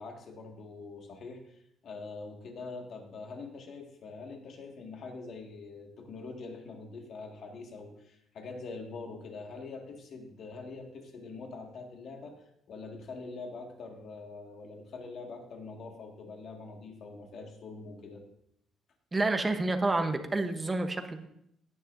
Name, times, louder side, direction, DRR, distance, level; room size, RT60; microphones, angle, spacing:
voice 1, 0.0-12.4 12.7-18.2, left 3 dB, 45° left, 2 dB, 1.8 m, -44 dB
voice 2, 19.1-21.3, right 2 dB, 15° right, 7 dB, 0.8 m, -29 dB
17.0 x 9.8 x 2.6 m, 0.73 s
cardioid pair, 175°, 0 cm